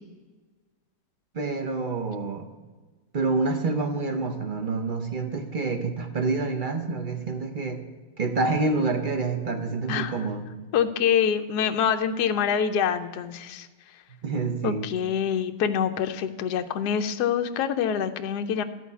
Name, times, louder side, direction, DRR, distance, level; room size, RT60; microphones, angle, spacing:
voice 1, 1.3-2.5 3.1-7.8 8.2-10.4 14.2-14.8, right 3 dB, 40° right, 6 dB, 0.7 m, -27 dB
voice 2, 10.7-13.7 14.6-18.6, left 8 dB, 70° left, 7 dB, 1.2 m, -25 dB
13.0 x 4.6 x 8.2 m, 1.3 s
omnidirectional pair, 1.9 m